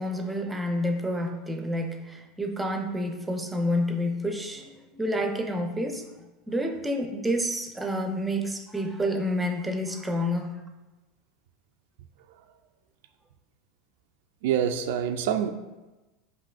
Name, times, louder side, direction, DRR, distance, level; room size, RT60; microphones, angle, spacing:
voice 1, 0.0-10.6, equal, 10° right, 0.5 m, -29 dB
voice 2, 14.4-15.5, right 9 dB, 75° right, 0.3 m, -26 dB
7.5 x 2.6 x 2.4 m
hypercardioid pair, 100°, 0 cm